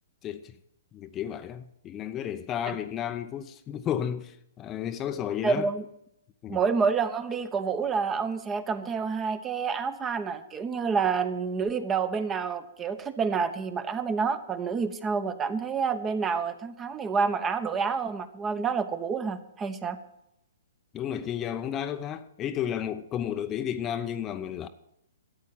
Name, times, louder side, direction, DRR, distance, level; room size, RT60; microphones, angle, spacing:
voice 1, 0.2-0.5 0.9-5.7 6.4-6.6 20.9-24.7, left 9 dB, 25° left, 0.7 m, -32 dB
voice 2, 5.4-5.8 6.5-20.0, right 5 dB, 20° right, 1.0 m, -28 dB
13.5 x 8.5 x 7.6 m
figure-of-eight pair, 120°, 0 cm